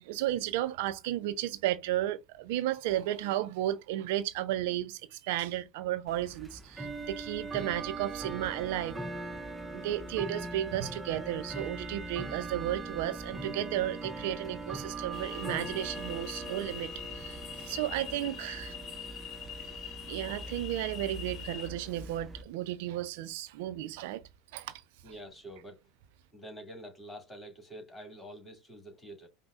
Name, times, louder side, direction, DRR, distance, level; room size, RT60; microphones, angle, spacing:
voice 1, 0.0-9.0 9.7-18.7 20.1-24.2 24.5-24.8, right 13 dB, 65° right, 0.3 m, -33 dB
Bell / Tick-tock, 6.1-22.4, right 2 dB, 15° right, 0.6 m, -41 dB
sound 1, 15.1-21.7, left 8 dB, 40° left, 1.0 m, -44 dB
voice 2, 25.0-25.8 26.3-29.3, right 1 dB, 15° left, 2.3 m, -47 dB
5.2 x 2.0 x 2.4 m
hypercardioid pair, 80°, 0 cm